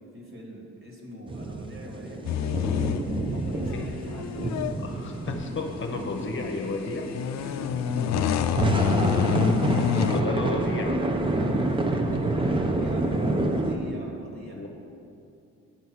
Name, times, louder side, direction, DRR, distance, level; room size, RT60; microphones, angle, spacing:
voice 1, 0.1-2.2 3.3-4.7 7.4-8.8 11.3-14.6, equal, 45° right, -1 dB, 2.3 m, -43 dB
sound 1, 1.3-13.8, right 2 dB, 15° right, 0.7 m, -28 dB
sound 2, 2.2-10.2, left 9 dB, 65° left, 0.5 m, -28 dB
voice 2, 4.8-7.1 10.1-11.0 14.6-14.7, left 3 dB, 40° left, 3 dB, 1.0 m, -32 dB
9.4 x 5.4 x 6.2 m, 2.6 s
cardioid pair, 90°, 30 cm